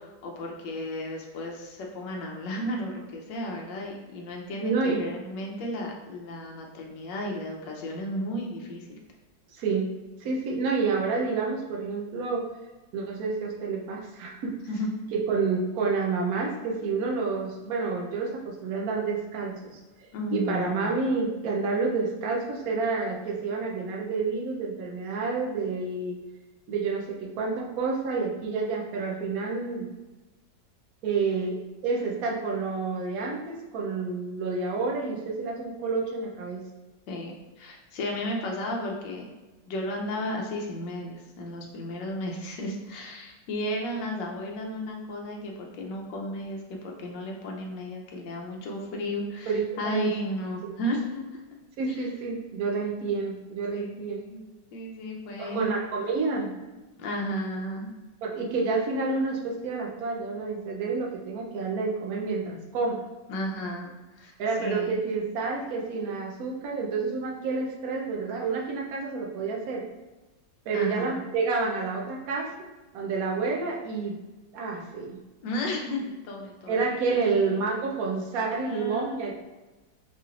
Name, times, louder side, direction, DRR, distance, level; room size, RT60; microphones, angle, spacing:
voice 1, 0.0-9.0 14.7-14.9 20.1-20.9 37.1-39.3 39.6-51.2 51.9-52.0 53.7-54.4 54.7-55.7 57.0-57.9 63.3-64.3 64.6-65.0 70.7-71.2 75.4-77.4 78.7-79.3, left 1 dB, 80° left, 0 dB, 1.4 m, -34 dB
voice 2, 4.6-5.0 9.5-9.9 10.2-12.4 12.9-14.5 15.1-19.8 20.3-26.2 26.7-29.9 31.0-36.6 49.5-50.1 50.7-50.8 51.8-54.2 55.4-56.6 58.2-63.0 64.4-69.8 70.7-72.5 72.9-74.1 74.5-75.2 76.7-79.3, right 4 dB, 65° right, 0 dB, 1.0 m, -29 dB
4.8 x 3.1 x 2.4 m, 1.1 s
omnidirectional pair, 1.9 m